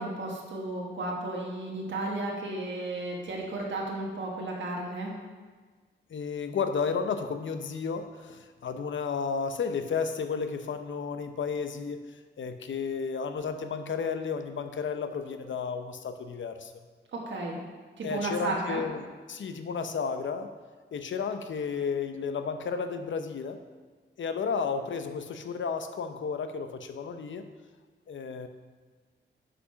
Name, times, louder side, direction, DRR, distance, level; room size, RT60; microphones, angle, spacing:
voice 1, 0.0-5.1 17.1-17.6 18.0-18.8, right 2 dB, 75° right, -2 dB, 1.4 m, -33 dB
voice 2, 6.1-12.1 12.4-16.7 18.0-20.5 20.9-23.6 24.2-27.4 28.1-28.5, left 5 dB, 75° left, 8 dB, 0.7 m, -32 dB
8.3 x 5.3 x 5.7 m, 1.4 s
wide cardioid pair, 125°, 20 cm